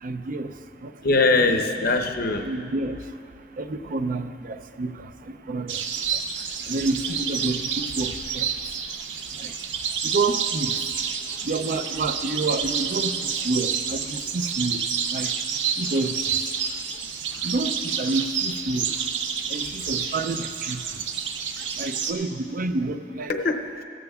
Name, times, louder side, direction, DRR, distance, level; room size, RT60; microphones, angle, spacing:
voice 1, 0.0-0.5 0.8-0.9 2.4-2.9 3.6-5.8 6.1-6.2 6.7-8.5 9.4-9.5 10.0-10.8 11.4-14.8 15.1-15.3 15.8-16.2 17.4-18.9 19.5-21.0 21.8-23.3, right 3 dB, 50° right, 9 dB, 0.5 m, -29 dB
voice 2, 1.0-2.5 23.3-23.8, left 3 dB, 55° left, 5 dB, 0.7 m, -22 dB
sound 1, 5.7-22.1, right 7 dB, 85° right, 0.7 m, -29 dB
16.5 x 13.5 x 2.4 m, 2.4 s
head